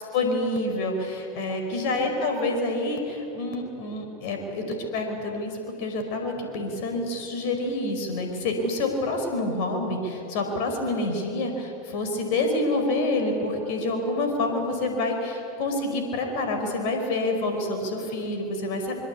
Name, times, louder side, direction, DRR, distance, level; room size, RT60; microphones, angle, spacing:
voice 1, 0.1-18.9, left 2 dB, 55° left, 4 dB, 5.0 m, -27 dB
25.0 x 23.0 x 8.6 m, 3.0 s
figure-of-eight pair, 90°, 0 cm